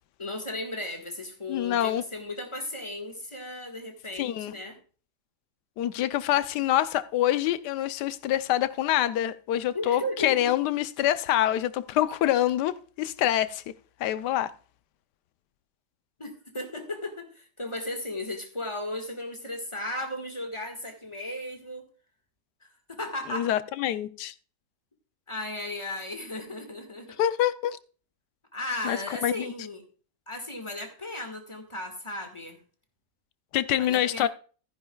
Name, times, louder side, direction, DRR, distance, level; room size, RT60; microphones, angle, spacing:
voice 1, 0.2-4.8 9.7-10.5 16.2-21.9 22.6-23.5 25.3-27.2 28.5-29.8 30.3-32.6 33.8-34.3, left 1 dB, 20° left, 1.6 m, -35 dB
voice 2, 1.5-2.0 4.2-4.5 5.8-13.7 14.0-14.5 23.3-24.3 27.2-27.8 28.8-29.5 33.5-34.3, left 12 dB, 80° left, 1.2 m, -26 dB
14.5 x 10.0 x 2.3 m
omnidirectional pair, 1.8 m